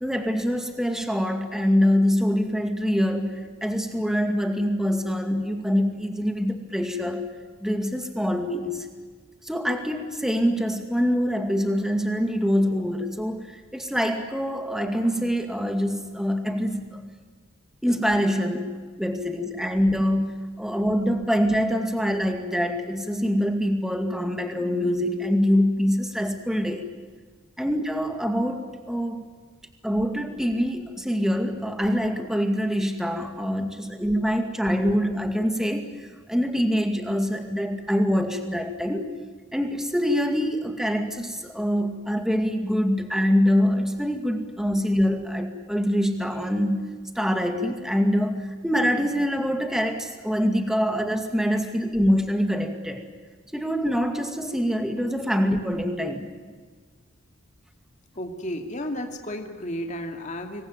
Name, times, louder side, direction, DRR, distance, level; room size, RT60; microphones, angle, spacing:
voice 1, 0.0-7.3 7.6-8.9 9.4-13.5 13.7-17.0 17.8-26.8 27.6-29.3 29.8-35.9 36.3-39.1 39.5-46.9 47.2-53.1 53.5-56.3, equal, ahead, 5 dB, 2.2 m, -25 dB
voice 2, 58.2-60.6, equal, 35° left, 3 dB, 2.5 m, -33 dB
26.5 x 21.5 x 9.1 m, 1.5 s
head